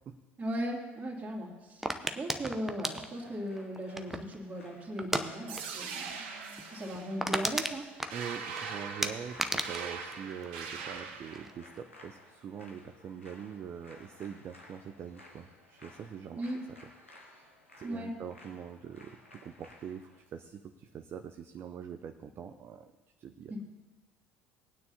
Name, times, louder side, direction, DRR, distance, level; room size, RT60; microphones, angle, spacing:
voice 1, 0.4-1.9 2.1-6.2 6.7-7.9 16.3-16.6 17.8-18.2 23.5-23.6, equal, 20° right, -4 dB, 2.6 m, -37 dB
sound 1, 1.8-4.4 5.0-5.3 5.6-5.8 6.1-6.2 6.6-6.7 6.9-8.6 9.0-11.0 11.3-11.8, right 1 dB, 5° right, 0.7 m, -34 dB
sound 2, 3.1-20.2, left 2 dB, 85° left, 1.4 m, -57 dB
sound 3, 5.5-11.5, right 6 dB, 65° right, 1.1 m, -41 dB
voice 2, 8.1-16.8 17.1-22.9 23.2-23.6, right 7 dB, 40° right, 6 dB, 0.6 m, -44 dB
20.0 x 9.4 x 2.8 m, 1.1 s
figure-of-eight pair, 65°, 7 cm